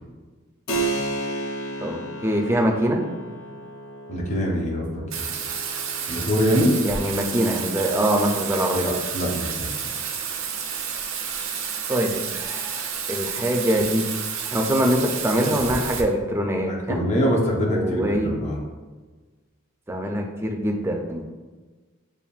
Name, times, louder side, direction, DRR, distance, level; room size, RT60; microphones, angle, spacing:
Keyboard (musical), 0.7-10.9, right 2 dB, 75° left, 0.6 m, -34 dB
voice 1, 1.8-3.0 6.8-8.9 11.9-14.2 14.5-17.0 17.6-18.3 19.9-21.2, equal, 10° right, 2 dB, 0.4 m, -24 dB
voice 2, 4.1-4.9 5.2-5.3 6.1-6.8 8.7-9.7 16.7-18.6, equal, 35° left, -1 dB, 0.7 m, -24 dB
Bathtub (filling or washing), 5.1-16.0, right 7 dB, 65° right, 0.5 m, -30 dB
7.0 x 2.5 x 2.4 m, 1.3 s
head